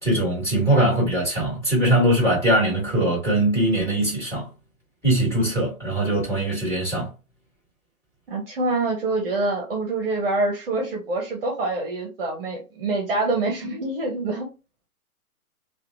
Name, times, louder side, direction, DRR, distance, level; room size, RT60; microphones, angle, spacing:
voice 1, 0.0-4.5 5.0-7.1, right 1 dB, 5° left, 1.6 m, -21 dB
voice 2, 8.3-14.5, right 2 dB, 40° right, 0.8 m, -26 dB
2.8 x 2.4 x 2.5 m
figure-of-eight pair, 135°, 44 cm